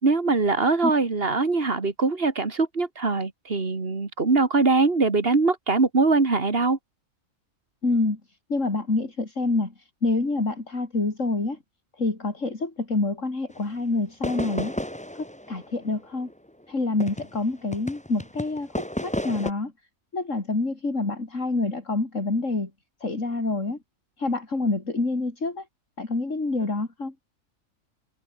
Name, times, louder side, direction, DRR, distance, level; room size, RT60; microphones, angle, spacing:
voice 1, 0.0-6.8, right 3 dB, 45° right, 2.4 m, -22 dB
voice 2, 7.8-8.2 8.5-9.7 10.0-11.6 12.0-14.7 15.1-16.3 16.7-19.7 20.1-22.7 23.0-23.8 24.2-25.7 26.0-27.1, left 3 dB, 65° left, 4.3 m, -27 dB
sound 1, 13.6-13.7 14.2-17.4 17.7-19.5, equal, 5° left, 2.3 m, -32 dB
omnidirectional pair, 1.4 m